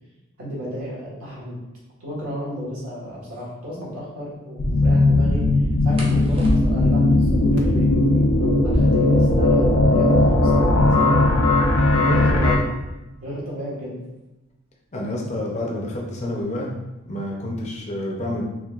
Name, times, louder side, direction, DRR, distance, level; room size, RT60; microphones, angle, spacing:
voice 1, 0.4-1.6 2.0-5.4 5.8-10.2 10.7-11.3 12.0-12.6 13.2-13.9, equal, 85° right, -6 dB, 1.5 m, -33 dB
sound 1, 3.2-3.5 5.9-7.0 8.5-10.1 10.4-10.5 10.7-11.3 12.0-14.5 15.5-15.8 16.2-16.7 17.0-17.8, equal, 25° right, 0.6 m, -31 dB
sound 2, 4.6-12.6, left 2 dB, 90° left, 0.6 m, -18 dB
voice 2, 14.9-16.7 17.0-18.4, left 1 dB, 30° left, -2 dB, 0.6 m, -28 dB
4.6 x 3.2 x 2.4 m, 1.0 s
head